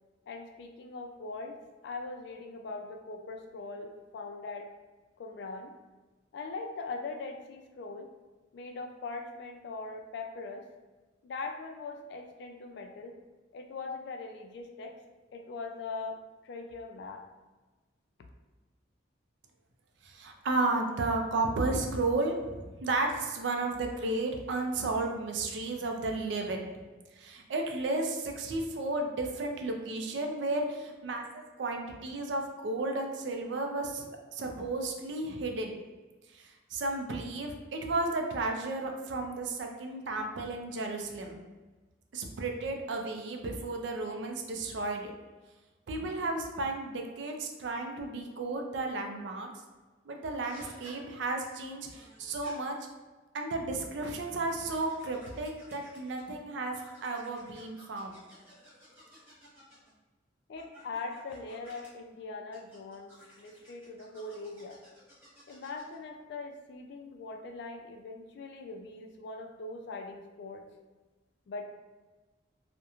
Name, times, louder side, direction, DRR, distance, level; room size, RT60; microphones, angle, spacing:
voice 1, 0.3-1.6 1.8-4.7 5.2-5.7 6.3-8.1 8.5-10.7 11.2-13.1 13.5-14.9 15.3-17.3 60.5-64.8 65.5-70.6 71.5-71.6, left 3 dB, 65° left, 4 dB, 0.3 m, -41 dB
voice 2, 20.0-26.7 27.2-34.1 34.3-35.7 36.3-41.4 42.1-45.1 45.9-49.5 50.1-52.8 53.3-58.2, right 2 dB, 65° right, 3 dB, 0.4 m, -33 dB
sound 1, 50.4-51.0 51.9-52.5 53.5-56.3 56.7-59.9 60.5-61.9 62.5-66.0, equal, 10° right, 0.9 m, -56 dB
2.9 x 2.1 x 2.3 m, 1.2 s
head